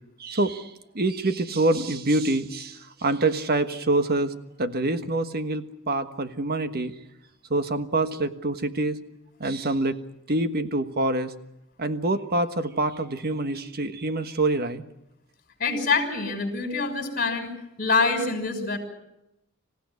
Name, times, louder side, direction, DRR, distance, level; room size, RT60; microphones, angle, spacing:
voice 1, 0.2-4.3 4.6-6.9 7.5-9.0 9.4-10.0 10.3-11.3 11.8-14.8, right 2 dB, 45° right, 10 dB, 1.4 m, -26 dB
voice 2, 15.6-17.5 17.8-18.8, left 4 dB, 40° left, 5 dB, 6.0 m, -25 dB
26.5 x 16.0 x 9.6 m, 0.87 s
head